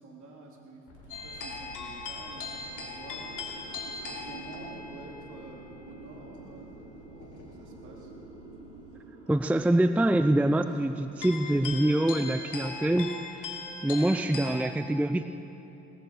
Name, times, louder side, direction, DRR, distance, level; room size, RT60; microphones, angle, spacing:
voice 1, 0.0-3.3 3.8-8.1, right 2 dB, 55° right, -1 dB, 3.6 m, -48 dB
sound 1, 0.9-8.9, right 1 dB, 80° left, 4.4 m, -53 dB
sound 2, 1.1-5.5 7.2-7.4 9.3-9.4 11.2-14.7, left 4 dB, 60° left, 3.1 m, -39 dB
sound 3, 2.2-13.3, right 2 dB, 90° right, 2.7 m, -50 dB
voice 2, 9.3-13.5 13.8-15.3, right 1 dB, 5° right, 10 dB, 0.5 m, -25 dB
18.5 x 14.0 x 4.8 m, 2.9 s
hypercardioid pair, 60°, 35 cm